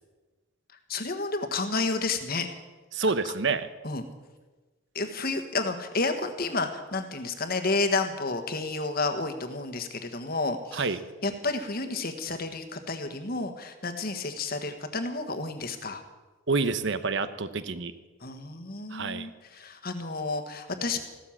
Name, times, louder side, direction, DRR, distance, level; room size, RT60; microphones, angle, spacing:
voice 1, 0.9-2.5 3.8-4.1 4.9-10.9 11.2-16.0 18.2-21.0, left 3 dB, 45° left, 7 dB, 1.5 m, -31 dB
voice 2, 2.9-3.7 10.7-11.0 16.5-17.9 18.9-19.3, right 4 dB, 60° right, 12 dB, 0.9 m, -28 dB
15.0 x 12.5 x 7.3 m, 1.2 s
head